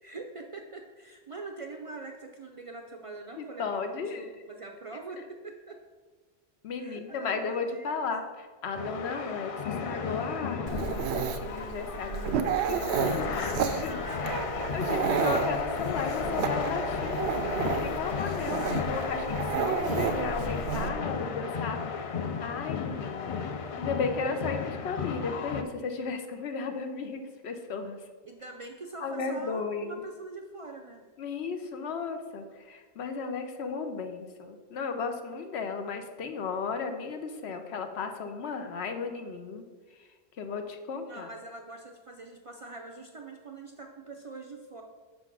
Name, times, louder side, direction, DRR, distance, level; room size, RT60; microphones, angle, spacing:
voice 1, 0.0-5.8 6.8-8.1 13.8-14.7 18.6-19.0 19.5-19.8 28.2-31.0 41.0-44.8, right 3 dB, 45° right, 3 dB, 0.4 m, -44 dB
voice 2, 3.4-4.2 6.6-8.2 8.6-14.0 14.7-23.4 23.8-28.0 29.0-30.0 31.2-39.6 40.4-41.3, left 5 dB, 80° left, 6 dB, 1.0 m, -35 dB
sound 1, 8.7-25.6, left 5 dB, 55° left, 0.4 m, -34 dB
Dog, 10.7-20.9, right 6 dB, 85° right, 0.9 m, -31 dB
5.8 x 4.0 x 5.9 m, 1.4 s
omnidirectional pair, 1.1 m